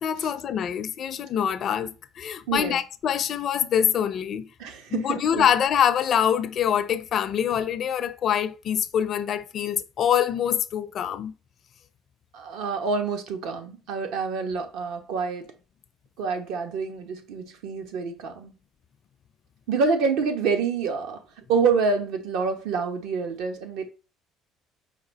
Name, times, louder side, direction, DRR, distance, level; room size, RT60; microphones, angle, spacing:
voice 1, 0.0-4.5 4.9-11.3, left 9 dB, 50° left, 0.4 m, -25 dB
voice 2, 2.5-2.8 4.6-5.4 12.3-15.5 16.2-18.5 19.7-21.2 21.5-23.9, right 5 dB, 80° right, 1.0 m, -27 dB
5.0 x 2.4 x 4.0 m
supercardioid pair, 100°, 0 cm